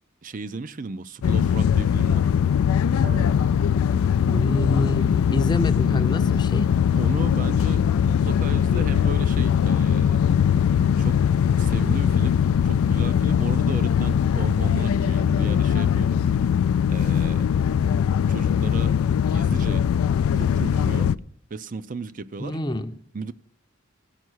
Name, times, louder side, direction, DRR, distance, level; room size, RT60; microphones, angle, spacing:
voice 1, 0.2-2.3 7.0-10.3 10.9-16.2 16.9-17.5 18.3-19.0 19.2-19.9 20.2-21.1 21.5-22.6 23.1-23.3, right 4 dB, 40° right, 0.5 m, -35 dB
sound 1, 1.2-21.2, left 8 dB, 90° left, 0.3 m, -21 dB
sound 2, 3.0-11.3, right 2 dB, 75° right, 2.7 m, -48 dB
sound 3, 3.3-14.7, left 2 dB, 70° left, 0.9 m, -42 dB
voice 2, 4.3-6.7 22.4-23.0, left 1 dB, 20° left, 0.6 m, -27 dB
16.5 x 5.5 x 6.2 m
head